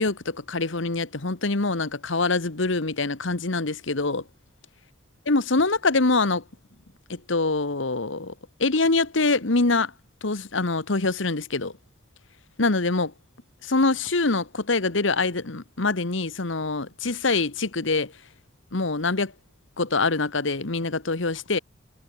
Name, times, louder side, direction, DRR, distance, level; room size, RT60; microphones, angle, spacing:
voice 1, 0.0-4.2 5.3-6.4 7.1-8.3 8.6-9.9 10.2-11.7 12.6-13.1 13.6-18.1 18.7-19.3 19.8-21.6, left 3 dB, 70° left, 1.4 m, -24 dB
head